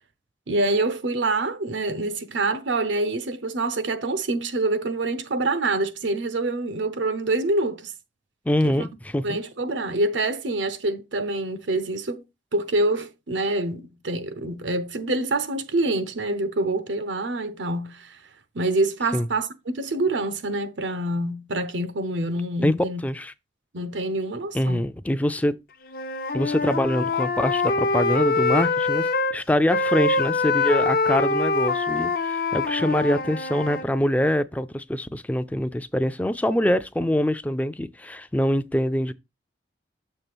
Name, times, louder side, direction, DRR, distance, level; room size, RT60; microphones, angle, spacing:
voice 1, 0.5-7.9 8.6-8.7 9.2-12.2 12.5-18.2 18.5-23.0 23.7-24.9, right 2 dB, 90° right, 0.9 m, -26 dB
voice 2, 8.5-9.4 19.1-19.3 22.6-22.7 23.0-23.3 24.5-25.6 26.3-39.1, left 1 dB, 10° left, 0.4 m, -24 dB
Wind instrument woodwind instrument, 25.9-29.4 29.7-33.9, left 3 dB, 50° left, 0.6 m, -24 dB
6.7 x 3.2 x 6.0 m
head